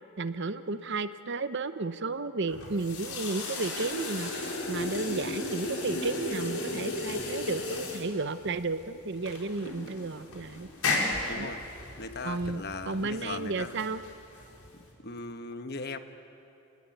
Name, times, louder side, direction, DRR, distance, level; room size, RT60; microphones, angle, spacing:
voice 1, 0.2-10.7 11.4-11.5 12.2-14.0, right 3 dB, 50° right, 12 dB, 0.8 m, -33 dB
sound 1, 2.5-14.9, left 2 dB, 80° left, 4.8 m, -35 dB
voice 2, 11.2-11.6 12.0-13.8 14.7-16.0, left 3 dB, 45° left, 8 dB, 1.2 m, -39 dB
29.5 x 19.0 x 9.3 m, 2.8 s
head